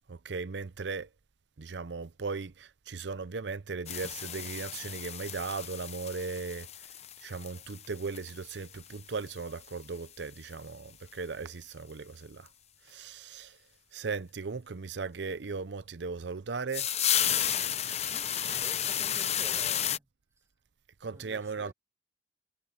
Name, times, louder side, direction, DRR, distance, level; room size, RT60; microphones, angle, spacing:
voice 1, 0.1-1.1 1.6-6.7 7.2-12.5 12.8-13.6 13.9-16.9 21.0-21.7, right 4 dB, 75° right, 0.7 m, -37 dB
sound 1, 3.9-9.0 9.3-9.4 9.7-9.8 10.0-10.1 10.5-10.6 12.5-12.6 16.7-20.0, left 10 dB, 40° left, 0.8 m, -32 dB
voice 2, 18.1-20.0 21.1-21.7, right 1 dB, 15° right, 1.6 m, -50 dB
head